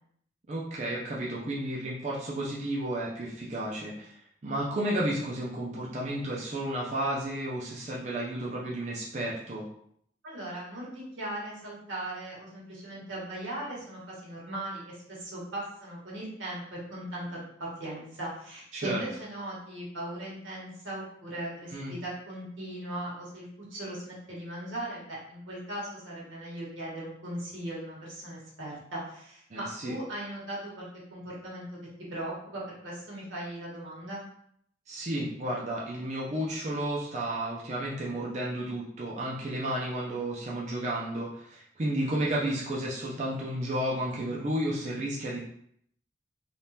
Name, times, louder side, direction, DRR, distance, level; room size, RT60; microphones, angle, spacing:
voice 1, 0.5-4.2 4.4-9.7 18.7-19.0 21.7-22.0 29.5-29.9 34.9-45.4, right 1 dB, 35° right, -5 dB, 0.5 m, -32 dB
voice 2, 10.2-17.4 17.8-31.6 32.1-34.2, right 1 dB, 90° right, -5 dB, 1.4 m, -38 dB
3.4 x 2.4 x 2.7 m, 0.68 s
head